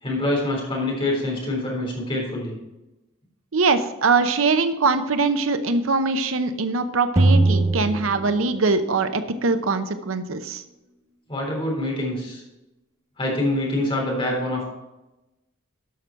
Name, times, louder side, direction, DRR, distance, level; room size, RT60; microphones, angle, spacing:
voice 1, 0.0-2.6 11.3-12.4 13.2-14.7, left 1 dB, 25° left, -2 dB, 3.6 m, -25 dB
voice 2, 3.5-10.6, right 4 dB, 75° right, 10 dB, 0.7 m, -22 dB
sound 1, 7.2-8.9, right 2 dB, 15° right, 0.6 m, -20 dB
12.0 x 6.1 x 4.5 m, 1.0 s
head